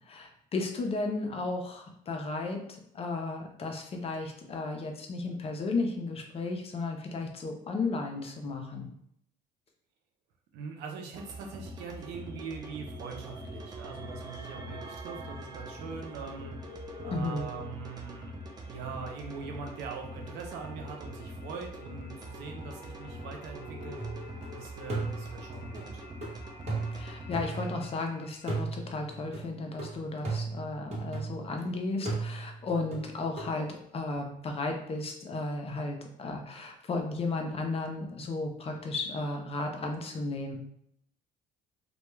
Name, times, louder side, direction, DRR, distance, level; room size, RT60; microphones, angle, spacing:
voice 1, 0.1-2.6 2.9-8.9 17.1-17.4 26.9-40.6, left 3 dB, 35° left, 3 dB, 0.5 m, -34 dB
voice 2, 10.5-16.7 17.0-26.0, right 5 dB, 85° right, 2 dB, 0.6 m, -42 dB
sound 1, 11.1-27.8, right 1 dB, 25° right, 0.4 m, -44 dB
sound 2, 14.1-28.5, left 6 dB, 85° left, 0.5 m, -52 dB
sound 3, 24.0-24.5 24.9-28.1 28.5-31.6 32.1-33.5, right 3 dB, 40° right, 1.0 m, -37 dB
2.2 x 2.2 x 3.0 m, 0.72 s
cardioid pair, 110°, 17 cm